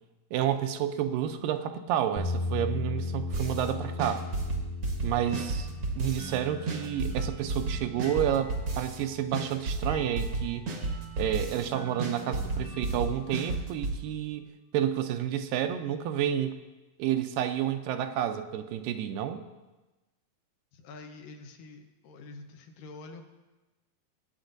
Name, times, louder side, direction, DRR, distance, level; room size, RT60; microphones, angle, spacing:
voice 1, 0.3-4.3 5.0-5.7 6.0-10.7 11.2-14.4 14.7-16.6 17.0-19.4, right 10 dB, 85° right, 8 dB, 2.2 m, -30 dB
sound 1, 2.2-10.2, left 3 dB, 45° left, 0.6 m, -37 dB
sound 2, 3.3-3.7 4.0-6.4 6.7-9.0 9.3-11.7 12.0-14.0, right 3 dB, 60° right, 1.2 m, -32 dB
sound 3, 5.3-14.6, right 3 dB, 60° left, 3.3 m, -47 dB
voice 2, 20.7-23.2, left 3 dB, 75° left, 5 dB, 2.5 m, -46 dB
19.5 x 9.0 x 2.6 m, 1.1 s
omnidirectional pair, 4.0 m